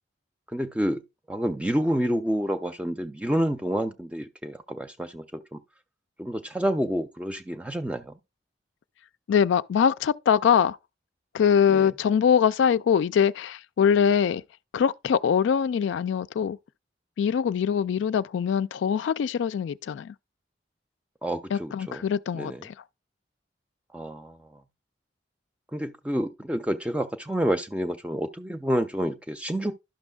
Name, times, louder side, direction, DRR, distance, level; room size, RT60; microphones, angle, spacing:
voice 1, 0.5-1.0 1.3-5.6 6.2-8.1 11.7-11.9 21.2-22.0 22.3-22.7 23.9-24.4 25.7-29.7, equal, 5° right, 0.5 m, -28 dB
voice 2, 9.3-10.8 11.3-14.4 14.7-16.6 17.2-20.1 21.5-22.7, left 7 dB, 80° left, 0.3 m, -23 dB
11.5 x 6.1 x 2.3 m
head